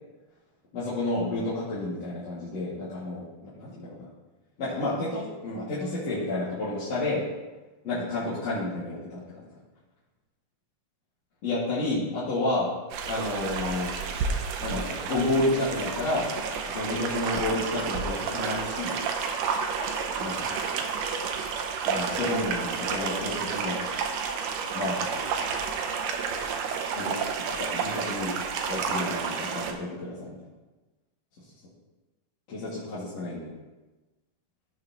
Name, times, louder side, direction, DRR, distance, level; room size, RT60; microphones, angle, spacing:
voice 1, 0.7-4.1 4.6-7.2 7.8-9.4 11.4-12.7 13.1-13.9 14.6-16.3 16.7-18.9 20.2-20.5 21.8-23.8 24.7-25.2 27.0-27.1 27.5-28.3 28.7-30.4 32.5-33.5, left 2 dB, 50° left, -11 dB, 3.2 m, -30 dB
sound 1, 12.9-29.7, right 5 dB, 85° right, 2.4 m, -30 dB
16.0 x 7.0 x 3.0 m, 1.2 s
omnidirectional pair, 3.9 m